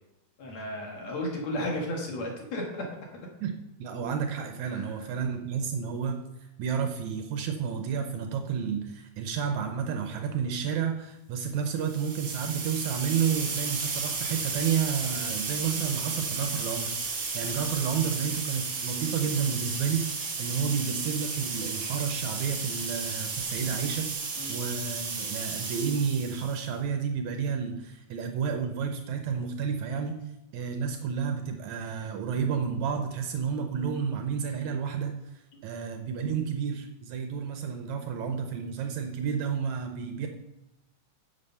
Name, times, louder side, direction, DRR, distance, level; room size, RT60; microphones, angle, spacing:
voice 1, 0.4-2.8 4.7-4.9 20.6-20.7 24.4-24.6, left 1 dB, 65° left, 0 dB, 2.6 m, -33 dB
voice 2, 3.4-6.2 6.6-30.2 30.5-35.1 35.6-40.3, right 6 dB, 75° right, 5 dB, 2.0 m, -31 dB
sound 1, 11.7-26.7, right 4 dB, 45° right, 1.1 m, -33 dB
9.0 x 6.9 x 5.5 m, 0.91 s
omnidirectional pair, 3.5 m